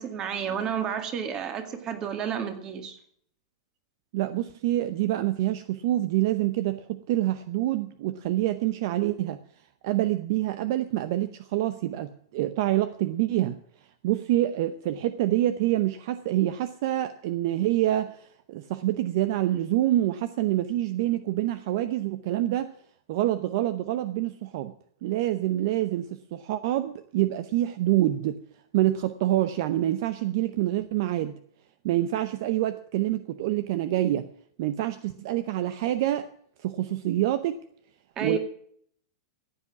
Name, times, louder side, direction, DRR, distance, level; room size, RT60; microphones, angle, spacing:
voice 1, 0.0-3.0 38.2-38.4, right 7 dB, 30° right, 2.1 m, -31 dB
voice 2, 4.1-9.4 9.8-13.6 14.0-22.7 23.1-24.7 25.0-28.4 28.7-31.3 31.8-34.3 34.6-36.3 36.6-37.6 38.2-38.4, right 14 dB, 55° right, 0.7 m, -26 dB
14.5 x 8.5 x 7.1 m
hypercardioid pair, 140°, 2 cm